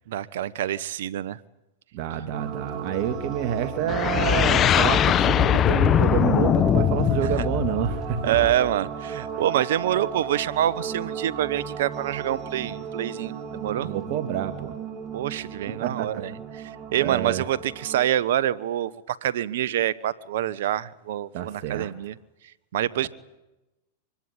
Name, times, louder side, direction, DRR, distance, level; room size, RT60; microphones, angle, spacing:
voice 1, 0.1-1.4 7.2-7.3 8.2-13.9 15.1-22.1 22.7-23.1, right 12 dB, 70° right, 18 dB, 1.2 m, -26 dB
voice 2, 1.9-8.4 9.3-9.4 13.8-14.8 15.8-16.2 17.0-17.5 21.3-21.9 23.0-23.1, right 10 dB, 55° right, 9 dB, 2.3 m, -28 dB
sound 1, 2.3-18.1, right 6 dB, 30° right, 3.4 m, -35 dB
sound 2, 3.9-8.7, left 10 dB, 30° left, 1.0 m, -21 dB
25.0 x 21.0 x 9.8 m, 0.98 s
hypercardioid pair, 115°, 0 cm